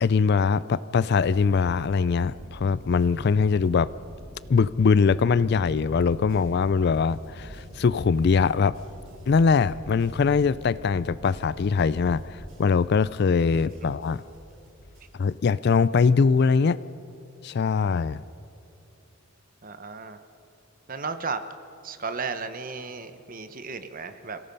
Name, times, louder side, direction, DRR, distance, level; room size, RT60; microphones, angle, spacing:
voice 1, 0.0-3.9 4.5-8.7 9.3-14.2 15.2-16.8 17.4-18.2, left 5 dB, 50° left, 18 dB, 0.4 m, -22 dB
sound 1, 1.0-12.5, equal, 75° left, 3.9 m, -44 dB
sound 2, 6.0-15.1, equal, 75° right, 6.7 m, -53 dB
voice 2, 19.6-20.2 20.9-21.4 21.8-24.4, right 4 dB, 40° right, 10 dB, 1.0 m, -34 dB
28.0 x 17.5 x 5.4 m, 2.7 s
head